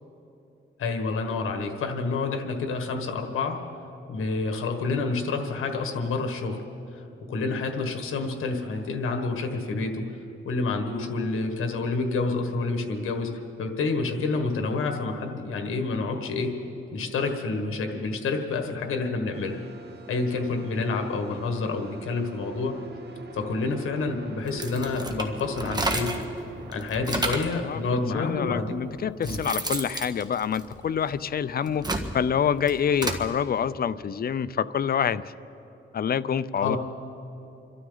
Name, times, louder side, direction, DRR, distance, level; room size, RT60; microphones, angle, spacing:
voice 1, 0.8-3.6 4.1-6.6 6.9-7.0 7.3-10.1 10.4-16.5 16.9-19.6 20.1-22.8 23.3-26.1 26.7-28.7 29.2-29.4 36.6-36.8, left 3 dB, 85° left, 4 dB, 1.6 m, -28 dB
sound 1, 19.3-26.7, right 3 dB, 55° right, 1.7 m, -43 dB
sound 2, 24.5-26.3 26.7-27.6 28.4-28.5 29.0-31.1 31.6-33.3, right 2 dB, 20° right, 1.6 m, -31 dB
voice 2, 27.6-31.9 32.1-35.2 35.9-36.8, left 7 dB, 45° left, 15 dB, 0.5 m, -27 dB
27.5 x 13.0 x 4.0 m, 3.0 s
cardioid pair, 70°, 21 cm